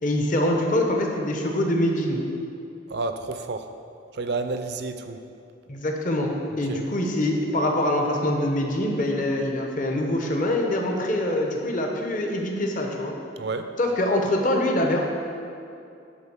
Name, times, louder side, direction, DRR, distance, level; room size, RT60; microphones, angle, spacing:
voice 1, 0.0-2.2 5.7-13.1 13.8-15.0, left 1 dB, 40° left, 1 dB, 1.0 m, -24 dB
voice 2, 2.9-3.7 4.1-5.2 6.7-6.8 13.4-13.7, right 3 dB, 55° right, 8 dB, 0.5 m, -30 dB
10.5 x 4.3 x 7.1 m, 2.6 s
head